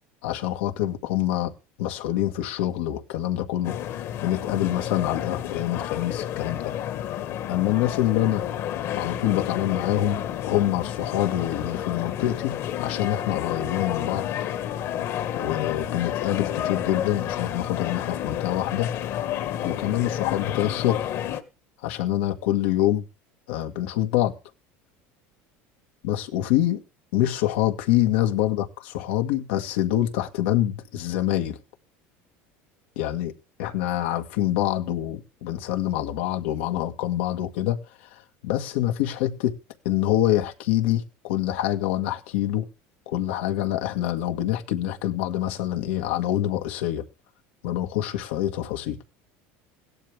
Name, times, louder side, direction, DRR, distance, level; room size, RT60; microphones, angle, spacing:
voice 1, 0.2-1.5 1.8-6.7 7.5-8.5 9.0-14.3 15.4-18.9 19.6-21.0 21.8-23.0 23.5-24.4 26.0-26.8 27.1-31.6 33.0-33.3 33.6-37.8 38.4-39.6 39.9-42.7 43.1-47.0 47.6-49.0, left 13 dB, 85° left, 1.8 m, -26 dB
sound 1, 3.6-21.4, left 11 dB, 55° left, 1.7 m, -30 dB
16.5 x 11.5 x 3.5 m
supercardioid pair, 130°, 6 cm